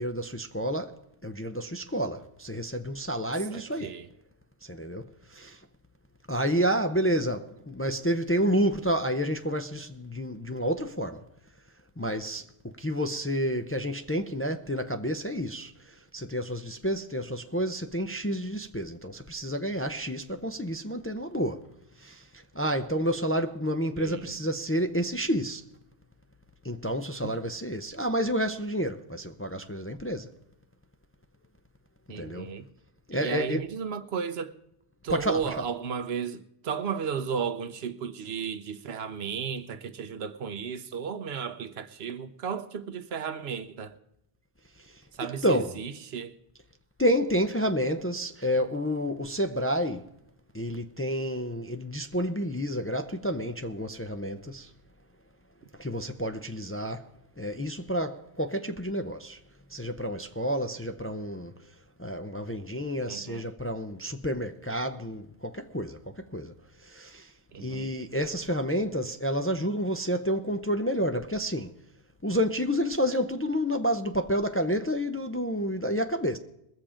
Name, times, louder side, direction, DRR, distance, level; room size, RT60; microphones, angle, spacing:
voice 1, 0.0-3.9 4.6-5.6 6.3-11.2 12.0-15.7 16.1-21.6 22.0-22.2 22.5-25.6 26.6-30.3 32.1-32.5 33.1-33.6 35.1-35.7 45.4-45.8 47.0-50.0 50.5-54.7 55.8-57.1 57.4-59.4 59.7-61.5 62.0-66.5 66.8-67.3 67.6-71.7 72.2-76.4, equal, 15° left, 0.5 m, -29 dB
voice 2, 3.5-4.1 24.0-24.4 27.2-27.3 32.1-32.6 33.1-34.6 35.0-43.9 45.2-46.3 63.1-63.5 67.5-67.9, right 6 dB, 80° right, 1.0 m, -34 dB
21.5 x 7.3 x 5.0 m
omnidirectional pair, 1.0 m